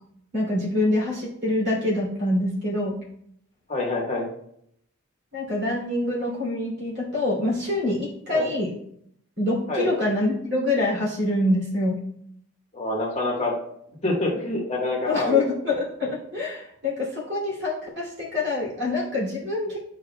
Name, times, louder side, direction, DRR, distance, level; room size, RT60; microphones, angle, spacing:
voice 1, 0.3-3.0 5.3-8.7 9.4-12.0 15.1-19.8, left 2 dB, 50° right, -4 dB, 2.7 m, -25 dB
voice 2, 3.7-4.3 8.3-8.5 9.7-9.9 12.7-13.5 14.0-15.4, left 2 dB, 30° left, -3 dB, 1.3 m, -26 dB
11.5 x 4.9 x 2.2 m, 0.72 s
head